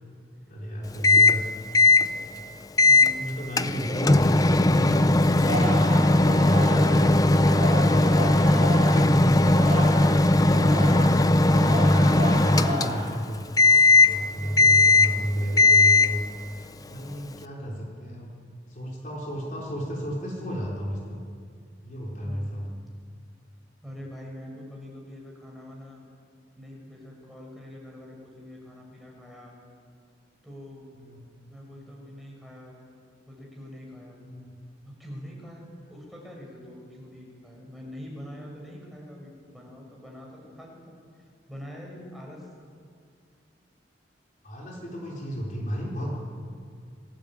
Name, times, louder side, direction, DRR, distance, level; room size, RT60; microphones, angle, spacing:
voice 1, 0.5-1.4 3.1-7.2 7.6-9.6 10.3-13.5 14.1-16.2 16.7-18.3 18.7-21.2 21.8-22.6 30.9-31.3 34.2-34.6 44.4-46.2, equal, 40° left, -3 dB, 4.2 m, -32 dB
Microwave oven, 1.0-1.4 1.7-2.1 2.8-3.1 3.6-13.2 13.6-14.2 14.6-15.2 15.6-16.2, left 2 dB, 20° left, 0.5 m, -19 dB
voice 2, 2.9-3.3 14.4-14.9 22.2-22.6 23.8-26.0 26.6-29.5 30.4-30.9 31.5-32.8 33.3-34.2 35.0-42.5, equal, ahead, -2 dB, 5.9 m, -44 dB
Singing, 5.5-10.2 10.4-13.2 13.6-14.0, right 1 dB, 40° right, 7.2 m, -33 dB
28.5 x 19.5 x 8.7 m, 2.2 s
head